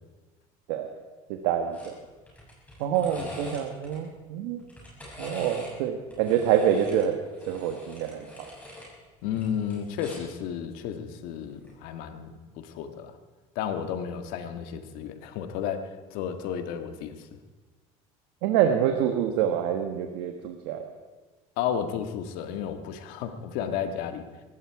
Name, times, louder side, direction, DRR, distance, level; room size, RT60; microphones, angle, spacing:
voice 1, 1.4-1.9 2.8-4.6 5.2-7.2 7.5-8.5 18.4-20.8, right 9 dB, 90° right, 5 dB, 1.4 m, -26 dB
sound 1, 1.7-1.9 2.3-4.0 4.6-5.7 6.1-8.9 9.2-10.4 11.5-11.7, left 1 dB, 10° left, 7.3 m, -44 dB
voice 2, 9.2-13.1 13.5-17.3 21.6-24.2, left 8 dB, 80° left, 8 dB, 1.7 m, -33 dB
19.0 x 16.0 x 4.8 m, 1.3 s
cardioid pair, 120°, 15 cm